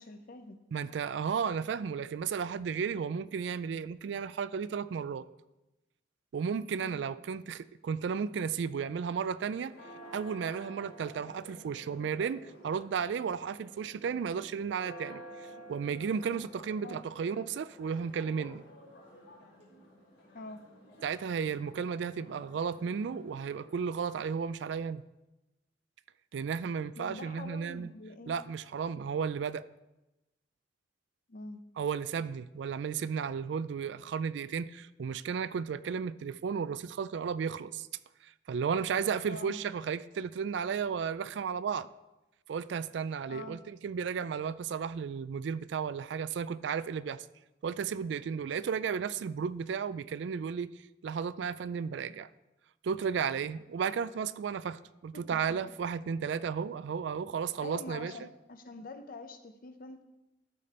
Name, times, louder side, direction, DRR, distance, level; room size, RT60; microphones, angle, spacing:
voice 1, 0.0-0.6 6.8-7.0 16.8-17.0 20.3-20.6 26.9-28.4 31.3-31.6 39.3-39.6 43.3-43.6 55.1-55.6 57.6-60.0, left 2 dB, 50° left, 9 dB, 0.7 m, -45 dB
voice 2, 0.7-5.2 6.3-9.7 10.1-18.6 21.0-25.0 26.3-27.9 28.3-29.6 31.8-37.9 38.2-41.9 42.5-47.3 47.6-50.7 51.0-52.3 52.8-58.1, right 6 dB, 65° right, 17 dB, 0.3 m, -34 dB
Church bell, 9.3-24.3, equal, 70° left, 3.3 m, -52 dB
12.5 x 5.1 x 4.3 m, 0.99 s
head